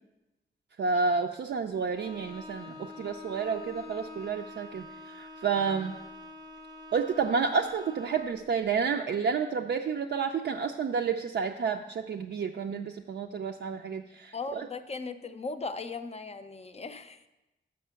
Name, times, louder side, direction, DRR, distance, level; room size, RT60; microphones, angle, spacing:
voice 1, 0.8-5.9 6.9-14.7, right 5 dB, 65° right, 3 dB, 0.4 m, -30 dB
Bowed string instrument, 1.9-8.5, left 2 dB, 20° right, 0.6 m, -46 dB
voice 2, 14.3-17.3, left 4 dB, 35° left, 9 dB, 0.4 m, -38 dB
6.4 x 5.9 x 6.8 m, 1.0 s
wide cardioid pair, 150°, 19 cm